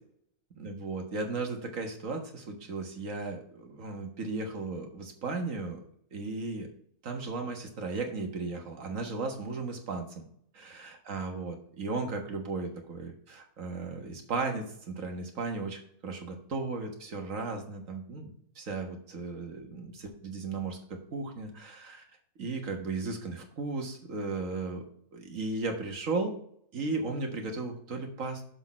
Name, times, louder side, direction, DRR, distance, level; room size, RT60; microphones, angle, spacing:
voice 1, 0.6-5.8 6.1-6.7 7.0-10.3 10.5-22.0 22.4-24.8 25.1-26.3 26.7-28.4, right 3 dB, 65° right, 3 dB, 1.8 m, -35 dB
6.9 x 6.1 x 4.3 m, 0.65 s
omnidirectional pair, 1.5 m